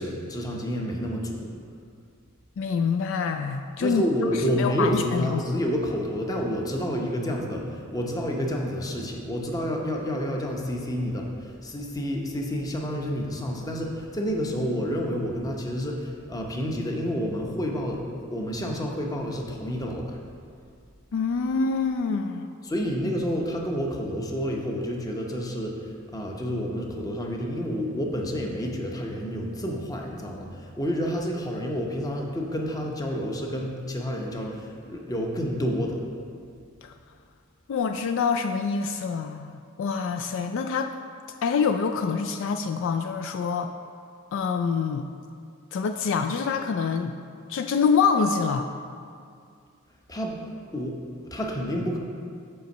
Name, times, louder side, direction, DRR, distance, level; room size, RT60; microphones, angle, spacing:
voice 1, 0.0-1.5 3.8-18.0 18.3-20.2 22.6-36.0 50.1-52.0, equal, 15° left, 0 dB, 0.7 m, -29 dB
voice 2, 2.6-4.0 4.6-5.6 21.1-22.5 36.8-36.9 37.7-40.9 41.4-43.7 44.3-45.1 45.7-47.2 47.5-48.7, left 5 dB, 60° left, 6 dB, 0.3 m, -26 dB
5.5 x 5.1 x 6.5 m, 2.3 s
head